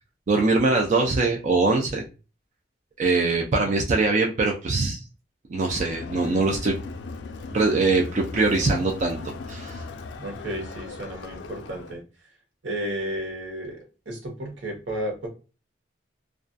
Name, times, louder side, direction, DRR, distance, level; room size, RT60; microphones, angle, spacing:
voice 1, 0.3-2.0 3.0-5.0 5.5-6.8 7.5-9.8, right 3 dB, 40° right, 1 dB, 0.4 m, -22 dB
Crowd, 5.7-12.0, left 3 dB, 65° left, 0.3 m, -38 dB
voice 2, 10.2-12.0 12.6-13.8 14.1-15.3, right 1 dB, 85° right, 2 dB, 0.9 m, -32 dB
2.3 x 2.2 x 2.4 m, 0.33 s
head